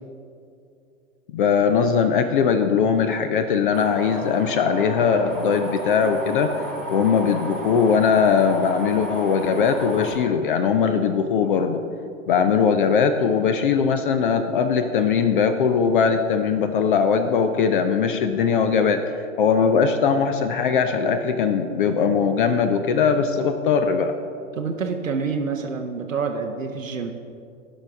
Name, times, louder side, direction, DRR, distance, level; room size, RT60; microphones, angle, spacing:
voice 1, 1.3-6.5 6.9-11.8 12.3-24.1, left 6 dB, 45° left, 8 dB, 0.5 m, -20 dB
Cricket in tree train, 3.7-10.1, equal, ahead, 1.5 m, -33 dB
voice 2, 24.5-27.1, right 5 dB, 85° right, 3 dB, 0.7 m, -27 dB
15.0 x 5.4 x 3.5 m, 2.5 s
figure-of-eight pair, 105°, 38 cm